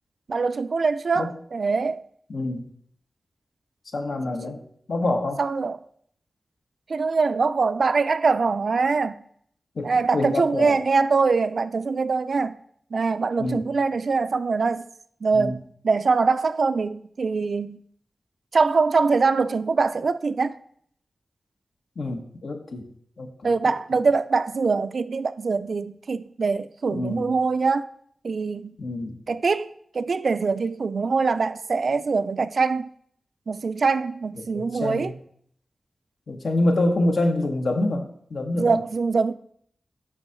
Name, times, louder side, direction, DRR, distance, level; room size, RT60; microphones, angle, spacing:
voice 1, 0.3-2.0 4.5-4.6 5.4-5.8 6.9-9.2 9.8-12.6 12.9-14.9 15.2-15.6 15.8-17.8 18.5-20.6 23.4-27.9 28.2-28.8 29.3-29.7 29.9-32.9 33.5-35.1 38.6-39.3, right 4 dB, 65° right, 0.3 m, -23 dB
voice 2, 2.3-2.7 3.9-4.6 4.9-5.4 9.8-10.8 13.4-13.7 15.3-15.5 22.0-22.9 23.2-23.7 26.9-27.3 28.8-29.2 34.4-35.1 36.3-38.8, left 2 dB, 70° left, 0.9 m, -26 dB
6.9 x 3.7 x 5.6 m
wide cardioid pair, 80°, 0 cm